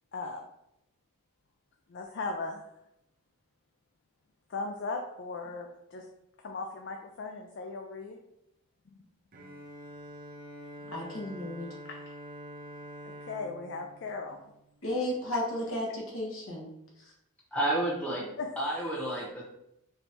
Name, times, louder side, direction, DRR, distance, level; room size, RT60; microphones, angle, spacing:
voice 1, 0.1-0.4 1.9-2.6 4.5-6.0 6.4-8.2 11.9-12.0 13.0-14.4 18.4-18.5, left 3 dB, 50° left, 2 dB, 0.4 m, -37 dB
Bowed string instrument, 9.3-15.2, equal, 40° right, 0.5 m, -46 dB
voice 2, 10.9-11.7 14.8-16.7 17.0-17.1, left 1 dB, 70° left, -2 dB, 1.2 m, -33 dB
voice 3, 17.5-18.3 18.6-19.4, right 1 dB, 5° left, -4 dB, 0.7 m, -30 dB
4.4 x 3.3 x 2.7 m, 0.82 s
head